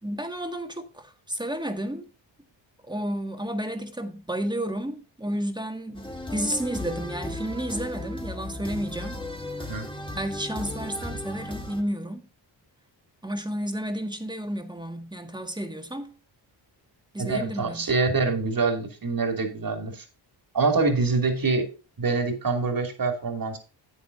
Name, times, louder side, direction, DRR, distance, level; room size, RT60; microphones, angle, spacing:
voice 1, 0.0-2.1 2.9-9.2 10.1-12.3 13.2-16.1 17.1-17.9, right 1 dB, 10° right, 1.8 m, -31 dB
sound 1, 5.9-11.8, left 1 dB, 10° left, 1.9 m, -36 dB
voice 2, 17.2-20.0 20.5-21.7 22.0-23.6, right 4 dB, 45° right, 2.7 m, -25 dB
12.0 x 8.4 x 2.6 m
cardioid pair, 60°, 46 cm